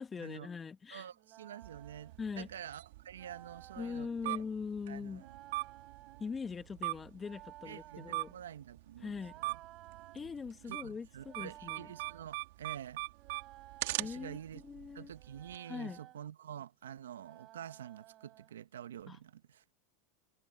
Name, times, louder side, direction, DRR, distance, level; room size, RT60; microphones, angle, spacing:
voice 1, 0.0-1.1 2.2-2.5 3.8-5.2 6.2-8.3 9.0-9.3 10.1-11.9 14.0-15.1 15.7-16.0 19.1-19.2, left 5 dB, 25° left, 1.8 m, -42 dB
voice 2, 0.9-4.4 4.9-5.4 7.6-9.6 10.7-13.0 14.0-14.6 14.9-19.6, right 10 dB, 85° right, 1.3 m, -48 dB
sound 1, 1.1-2.2 3.1-4.1 5.1-6.4 7.1-8.4 9.1-10.2 11.1-12.3 13.1-14.5 15.1-16.2 17.1-18.5, right 15 dB, 45° right, 5.9 m, -56 dB
sound 2, 1.6-15.6, right 21 dB, 70° right, 3.6 m, -43 dB
hypercardioid pair, 95°, 0 cm